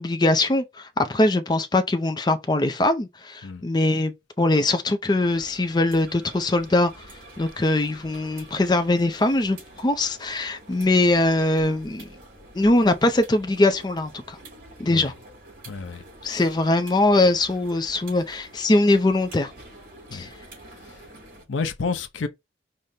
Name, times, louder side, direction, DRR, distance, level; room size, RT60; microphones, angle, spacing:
voice 1, 0.0-7.1 7.4-12.1 12.5-14.4 14.8-15.1 16.2-19.5 20.1-20.3, left 2 dB, 20° left, 0.4 m, -22 dB
sound 1, 5.2-21.5, right 1 dB, 45° right, 2.9 m, -47 dB
voice 2, 15.7-16.5 20.1-20.3 20.9-21.0 21.5-22.3, left 4 dB, 90° left, 0.6 m, -31 dB
5.0 x 2.1 x 4.1 m
head